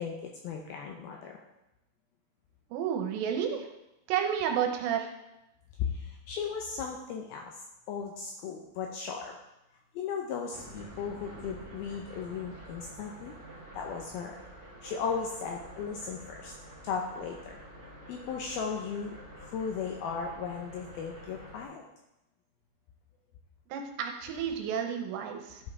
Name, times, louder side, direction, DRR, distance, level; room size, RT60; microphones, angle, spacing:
voice 1, 0.0-1.4 5.8-7.5 7.9-9.4 9.9-13.3 13.8-14.4 14.8-16.5 16.8-17.6 18.1-21.8, left 6 dB, 80° left, 1 dB, 2.3 m, -36 dB
voice 2, 2.7-3.7 4.1-5.1 23.7-25.6, right 8 dB, 80° right, 4 dB, 3.1 m, -31 dB
sound 1, 10.5-21.7, right 1 dB, 40° right, 1.1 m, -48 dB
12.0 x 5.5 x 4.7 m, 0.91 s
omnidirectional pair, 5.1 m